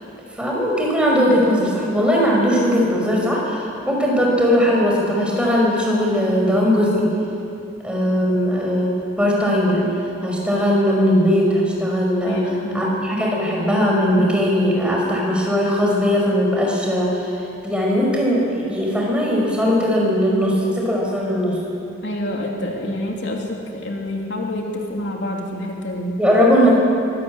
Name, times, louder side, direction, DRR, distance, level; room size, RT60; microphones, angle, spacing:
voice 1, 0.3-7.1 7.8-9.9 10.2-12.4 12.7-17.4 17.6-21.6 26.2-26.7, equal, 5° right, -2 dB, 5.1 m, -19 dB
voice 2, 12.2-12.9 22.0-26.2, left 1 dB, 65° left, 0 dB, 2.9 m, -27 dB
23.5 x 17.5 x 8.6 m, 2.7 s
head